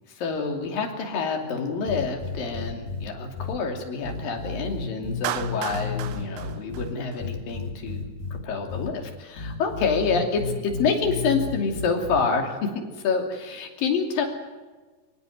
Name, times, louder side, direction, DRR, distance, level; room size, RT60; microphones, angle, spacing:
voice 1, 0.1-14.3, left 5 dB, 60° left, 3 dB, 4.3 m, -27 dB
sound 1, 1.9-3.0 3.4-3.5 4.0-6.9 7.2-8.4 8.7-8.9 9.4-12.2, left 4 dB, 85° left, 5.7 m, -32 dB
Clapping, 5.2-7.5, right 13 dB, 85° right, 3.0 m, -34 dB
25.0 x 16.5 x 9.5 m, 1.3 s
omnidirectional pair, 4.9 m